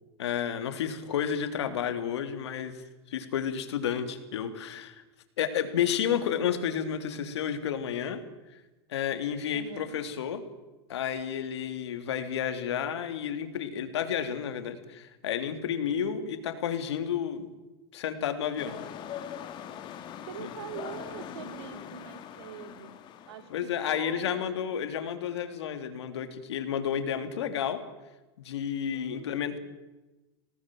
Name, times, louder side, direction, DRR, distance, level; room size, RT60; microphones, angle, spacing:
voice 1, 0.2-5.0 5.4-8.2 8.9-10.4 10.9-17.5 17.9-18.8 20.4-20.5 23.5-27.8 28.4-29.6, left 8 dB, 90° left, 8 dB, 3.1 m, -31 dB
voice 2, 9.5-10.0 20.3-23.0 23.3-24.7 28.9-29.6, right 9 dB, 75° right, 9 dB, 2.9 m, -43 dB
sound 1, 18.6-23.7, left 9 dB, 35° left, 2.5 m, -42 dB
27.0 x 18.5 x 7.8 m, 1.1 s
supercardioid pair, 140°, 14 cm